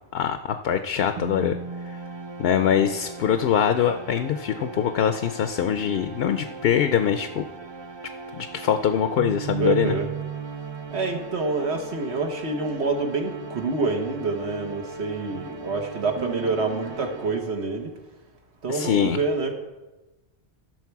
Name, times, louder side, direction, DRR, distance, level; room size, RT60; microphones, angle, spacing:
voice 1, 0.1-1.6 1.9-2.0 2.4-7.4 8.3-9.9 18.7-19.2, left 8 dB, 70° left, 9 dB, 0.8 m, -23 dB
sound 1, 1.2-17.9, right 5 dB, 40° right, 0.4 m, -37 dB
voice 2, 9.6-10.1 10.9-18.0 18.6-19.5, right 3 dB, 80° right, 4 dB, 1.5 m, -27 dB
15.0 x 6.4 x 4.7 m, 1.1 s
omnidirectional pair, 1.1 m